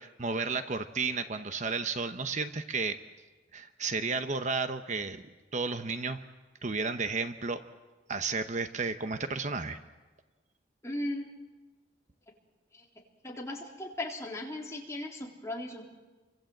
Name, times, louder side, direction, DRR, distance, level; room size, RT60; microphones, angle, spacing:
voice 1, 0.2-3.0 3.5-5.2 5.5-6.2 6.6-7.6 8.1-9.8, right 4 dB, 40° right, 9 dB, 1.0 m, -32 dB
voice 2, 10.8-11.3 12.7-12.8 13.2-15.9, left 1 dB, 15° left, -1 dB, 3.8 m, -37 dB
29.5 x 24.5 x 7.9 m, 1.2 s
head